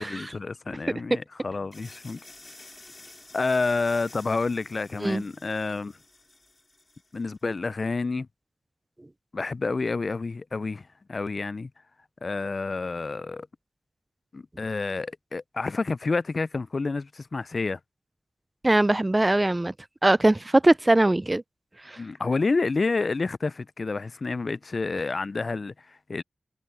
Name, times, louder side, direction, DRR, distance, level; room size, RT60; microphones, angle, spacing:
voice 1, 0.0-2.2 3.3-5.9 7.1-8.3 9.3-11.7 12.2-13.5 14.3-17.8 22.0-26.2, left 3 dB, 55° left, 0.4 m, -29 dB
sound 1, 1.7-7.4, left 2 dB, 30° left, 4.9 m, -50 dB
voice 2, 18.6-19.7 20.0-21.4 21.9-22.0, right 1 dB, 25° right, 0.4 m, -21 dB
cardioid pair, 55°, 0 cm